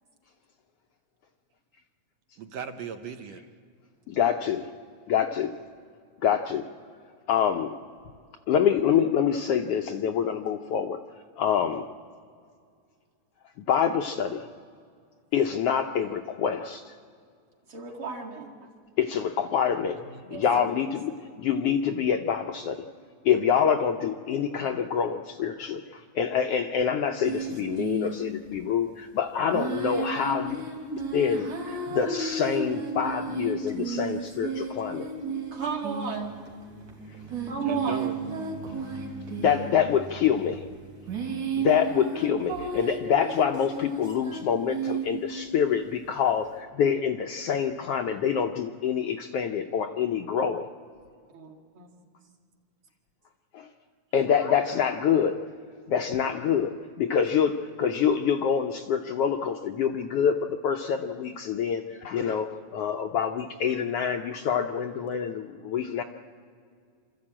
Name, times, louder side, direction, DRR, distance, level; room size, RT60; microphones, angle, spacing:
voice 1, 2.4-3.4 20.1-20.7 37.7-38.2, right 6 dB, 70° right, 7 dB, 2.0 m, -38 dB
voice 2, 4.1-4.7 5.1-5.5 6.2-6.6 7.3-7.7 8.5-11.0 11.4-11.8 13.7-14.5 15.3-16.9 19.0-20.0 20.3-21.1 21.4-22.8 23.2-30.6 31.1-35.1 39.4-40.7 41.6-50.7 53.5-53.7 54.1-55.4 55.9-66.0, left 8 dB, 75° left, 5 dB, 1.4 m, -26 dB
voice 3, 17.7-18.5 20.2-20.8 35.5-36.3 37.5-38.0 51.3-51.9, right 4 dB, 45° right, 0 dB, 2.7 m, -34 dB
sound 1, 27.2-28.6 29.5-45.4, right 4 dB, 90° right, 4.4 m, -33 dB
26.5 x 13.5 x 8.7 m, 2.2 s
omnidirectional pair, 3.3 m